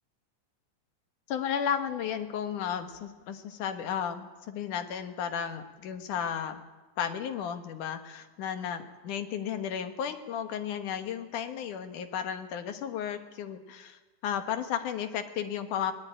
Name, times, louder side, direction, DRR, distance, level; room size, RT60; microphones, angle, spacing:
voice 1, 1.3-6.6 7.0-15.9, left 8 dB, 80° left, 8 dB, 3.0 m, -34 dB
21.5 x 20.0 x 9.0 m, 1.2 s
omnidirectional pair, 3.6 m